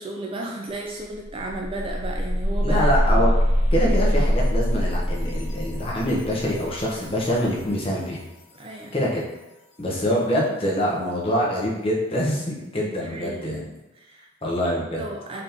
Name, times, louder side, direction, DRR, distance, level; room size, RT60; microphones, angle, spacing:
voice 1, 0.0-3.3 8.5-9.0 12.8-13.6 14.0-14.3 15.0-15.4, right 2 dB, 25° right, 0 dB, 0.3 m, -34 dB
sound 1, 0.7-0.8 1.1-7.9, equal, 70° left, 0.8 m, -24 dB
voice 2, 2.6-3.3 3.7-8.2 8.9-9.2 9.8-13.6 14.4-15.0, equal, 25° left, -4 dB, 0.8 m, -25 dB
4.1 x 2.8 x 3.3 m, 1.0 s
head